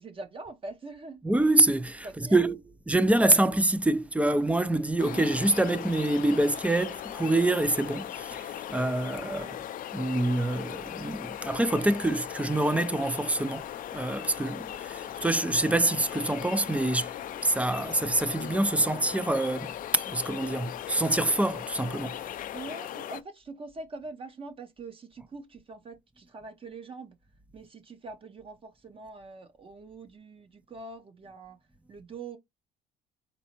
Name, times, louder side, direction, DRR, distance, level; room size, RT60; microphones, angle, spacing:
voice 1, 0.0-1.2 2.0-2.4 5.0-5.3 9.3-9.6 22.5-27.2 27.5-31.6 31.9-32.4, right 3 dB, 30° right, 0.8 m, -43 dB
voice 2, 1.2-2.6 2.9-9.5 9.9-13.7 13.9-17.1 17.4-19.7 20.1-22.2, right 2 dB, 10° right, 0.4 m, -26 dB
sound 1, 5.0-23.2, left 11 dB, 55° left, 0.5 m, -38 dB
4.3 x 4.1 x 2.9 m
cardioid pair, 110°, 17 cm